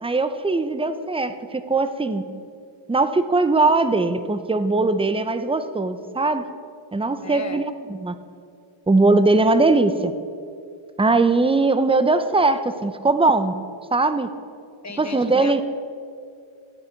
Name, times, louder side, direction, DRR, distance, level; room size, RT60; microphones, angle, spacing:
voice 1, 0.0-2.2 2.9-6.4 6.9-7.6 7.9-8.1 8.9-10.1 11.0-13.5 13.9-14.3 15.0-15.6, right 3 dB, 10° right, 10 dB, 0.6 m, -20 dB
voice 2, 7.2-7.6 14.8-15.6, left 3 dB, 35° left, 8 dB, 1.0 m, -35 dB
13.5 x 8.8 x 4.6 m, 2.4 s
cardioid pair, 65°, 49 cm